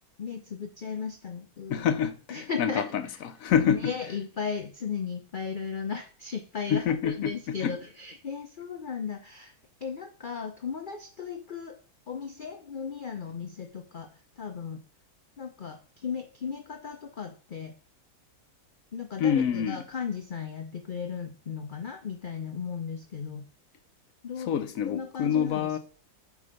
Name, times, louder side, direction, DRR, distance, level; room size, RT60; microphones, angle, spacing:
voice 1, 0.2-1.9 2.3-9.5 9.8-11.8 12.1-14.8 15.4-17.8 18.9-23.5 24.2-24.5 24.8-25.8, left 6 dB, 45° left, 0.7 m, -36 dB
voice 2, 1.7-3.0 3.4-3.9 6.7-7.7 19.2-19.8 24.5-25.8, left 8 dB, 65° left, 1.1 m, -26 dB
7.7 x 3.8 x 5.2 m
omnidirectional pair, 1.7 m